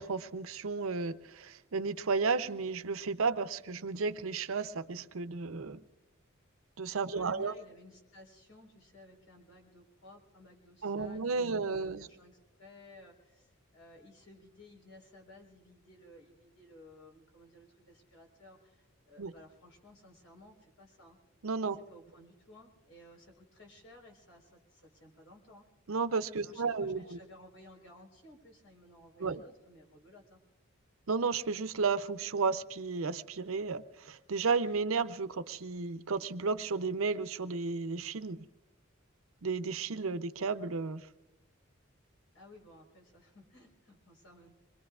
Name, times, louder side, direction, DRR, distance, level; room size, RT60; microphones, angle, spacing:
voice 1, 0.0-5.8 6.8-7.5 10.8-12.1 19.2-19.3 21.4-21.8 25.9-27.2 29.2-29.4 31.1-38.4 39.4-41.0, right 4 dB, 85° right, 12 dB, 0.6 m, -33 dB
voice 2, 7.1-21.2 21.7-25.6 26.4-30.4 42.3-44.5, left 1 dB, 80° left, 1 dB, 4.2 m, -57 dB
26.0 x 22.0 x 2.4 m, 1.0 s
head